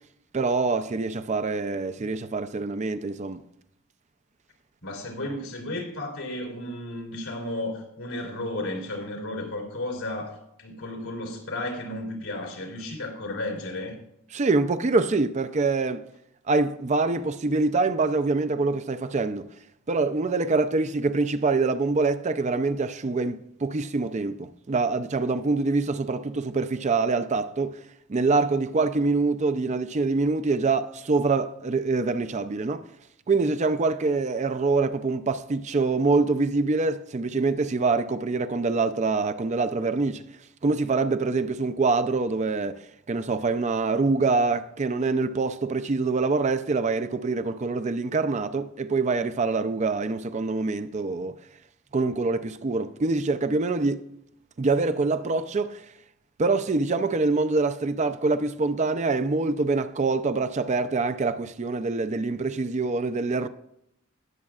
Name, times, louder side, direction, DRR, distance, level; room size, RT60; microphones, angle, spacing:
voice 1, 0.3-3.4 14.3-16.0 16.5-19.5 19.9-27.8 28.1-32.8 33.3-40.2 40.6-51.3 51.9-54.0 54.6-55.8 56.4-63.5, right 3 dB, 35° right, 0.4 m, -25 dB
voice 2, 4.8-14.0, left 1 dB, 90° left, 3.2 m, -33 dB
19.0 x 7.3 x 2.4 m
head